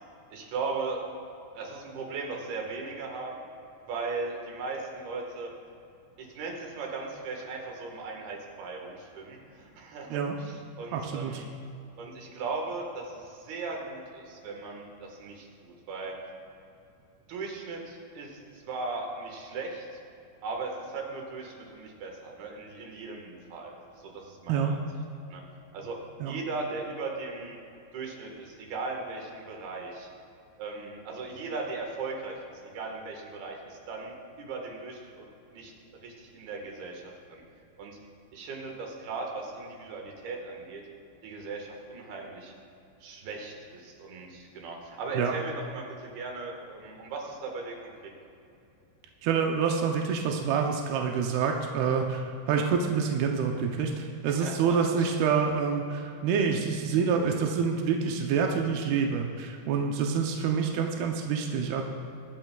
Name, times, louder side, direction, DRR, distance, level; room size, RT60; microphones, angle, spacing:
voice 1, 0.3-1.0 1.5-3.5 3.9-5.5 6.2-11.5 12.0-16.1 17.3-19.9 20.4-24.8 25.3-25.4 25.7-26.0 26.3-27.6 27.9-30.1 30.6-32.3 32.6-35.7 36.0-37.4 37.8-38.0 38.3-40.8 41.2-42.5 43.0-47.8 48.0-48.1 54.4-55.2, right 3 dB, 65° right, 1 dB, 3.1 m, -38 dB
voice 2, 10.9-11.4 24.5-24.7 26.2-26.3 45.1-45.3 49.2-61.8, right 6 dB, 80° right, 2 dB, 2.3 m, -27 dB
22.0 x 10.5 x 2.3 m, 2.7 s
omnidirectional pair, 5.3 m